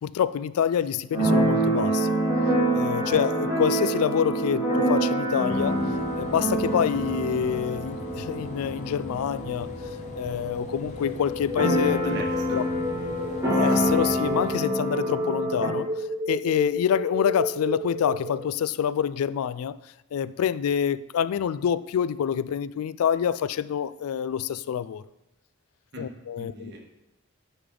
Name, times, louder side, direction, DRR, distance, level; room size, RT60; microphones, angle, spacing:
voice 1, 0.0-2.1 2.7-5.8 6.2-9.7 10.2-12.2 12.5-12.6 13.5-15.9 16.3-19.8 20.1-25.0 26.0-26.7, left 8 dB, 75° left, 0.3 m, -26 dB
Keyboard (musical), 1.1-10.7 10.9-11.0 11.2-15.7, right 1 dB, 15° right, 3.2 m, -26 dB
sound 1, 5.5-14.5, left 1 dB, 30° left, 1.0 m, -42 dB
sound 2, 8.8-18.5, left 1 dB, 30° right, 0.7 m, -33 dB
voice 2, 12.0-12.6 25.9-26.0 26.4-26.8, right 1 dB, 50° right, 1.6 m, -39 dB
9.8 x 5.2 x 3.8 m
head